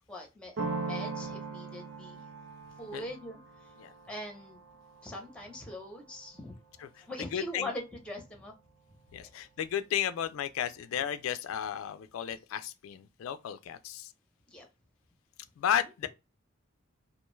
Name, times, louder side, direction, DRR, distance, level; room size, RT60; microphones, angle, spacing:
voice 1, 0.1-2.2 2.8-3.7 4.1-4.6 5.0-6.5 7.0-8.5 14.5-14.7, left 1 dB, 5° left, 0.7 m, -42 dB
sound 1, 0.6-6.1, right 4 dB, 70° right, 0.6 m, -40 dB
voice 2, 7.2-7.7 9.1-14.1 15.6-16.1, left 9 dB, 90° left, 0.3 m, -33 dB
2.5 x 2.2 x 3.0 m
head